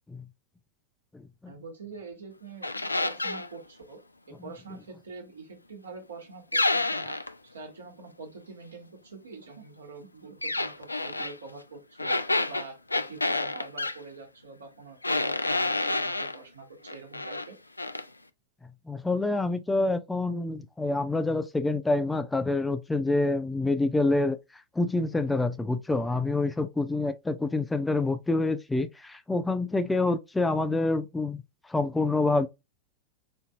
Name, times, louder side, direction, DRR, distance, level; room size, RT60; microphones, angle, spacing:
voice 1, 1.5-4.0 4.3-12.2 12.5-17.6, right 3 dB, 70° right, 1.2 m, -45 dB
sound 1, 2.6-3.5 6.5-7.3 10.4-11.3 12.0-14.0 15.0-16.4 16.9-17.5 17.8-18.1, left 2 dB, 85° left, 0.3 m, -28 dB
voice 2, 18.9-24.4 24.8-31.4 31.7-32.5, left 2 dB, 10° left, 0.3 m, -27 dB
4.3 x 2.6 x 2.4 m
figure-of-eight pair, 90°, 0 cm